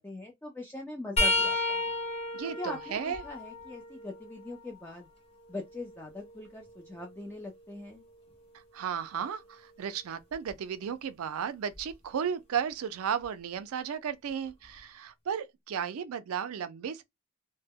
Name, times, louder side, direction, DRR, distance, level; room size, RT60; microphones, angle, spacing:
voice 1, 0.0-1.8 2.4-5.1 5.5-8.0, left 2 dB, 10° left, 0.3 m, -41 dB
sound 1, 1.2-4.9 5.5-7.4 10.3-10.5 11.7-11.9 13.2-13.3, left 2 dB, 30° left, 0.8 m, -33 dB
voice 2, 2.3-3.2 8.7-17.0, right 7 dB, 80° right, 0.4 m, -34 dB
2.1 x 2.0 x 3.4 m
head